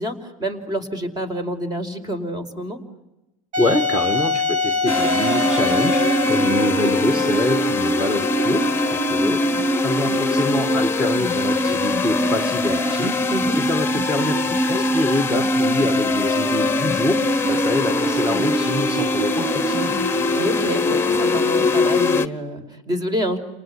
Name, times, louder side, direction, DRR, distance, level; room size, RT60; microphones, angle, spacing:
voice 1, 0.0-2.8 13.3-13.6 20.3-23.4, equal, 25° right, 9 dB, 4.9 m, -27 dB
Wind instrument woodwind instrument, 3.5-9.2, left 3 dB, 50° right, 4.4 m, -25 dB
voice 2, 3.6-13.2 13.5-19.9, left 1 dB, 5° right, 6 dB, 2.1 m, -25 dB
sound 1, 4.9-22.3, left 2 dB, 15° left, 1.4 m, -21 dB
30.0 x 19.5 x 10.0 m, 0.96 s
supercardioid pair, 95°, 16 cm